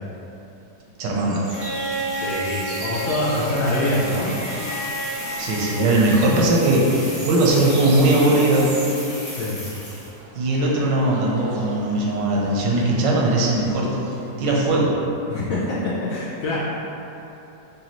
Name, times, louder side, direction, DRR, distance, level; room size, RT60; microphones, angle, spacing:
voice 1, 1.0-1.4 5.4-8.8 10.3-14.0 14.4-15.0, right 1 dB, 85° right, -3 dB, 1.3 m, -19 dB
sound 1, 1.1-14.3, right 2 dB, 70° right, 0.8 m, -42 dB
sound 2, 1.4-10.2, left 1 dB, 30° left, 0.5 m, -36 dB
Bowed string instrument, 1.5-6.6 8.0-8.1, right 1 dB, 80° left, 1.4 m, -31 dB
voice 2, 2.1-4.3 9.3-9.6 15.3-16.6, left 1 dB, 65° left, -8 dB, 0.9 m, -25 dB
4.8 x 2.6 x 2.9 m, 3.0 s
omnidirectional pair, 1.9 m